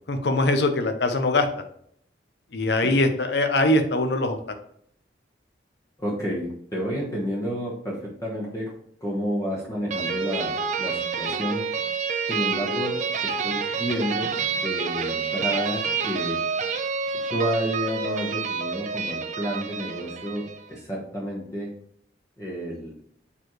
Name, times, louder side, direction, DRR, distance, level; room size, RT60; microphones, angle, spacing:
voice 1, 0.1-1.5 2.5-4.4, left 2 dB, 60° left, 7 dB, 0.7 m, -22 dB
voice 2, 6.0-8.7 9.0-11.6 12.3-13.0 13.2-16.4 17.3-21.7 22.4-23.0, equal, 15° left, -5 dB, 1.2 m, -30 dB
sound 1, 9.9-20.6, right 5 dB, 40° right, 0.5 m, -28 dB
7.0 x 4.5 x 3.1 m, 0.65 s
head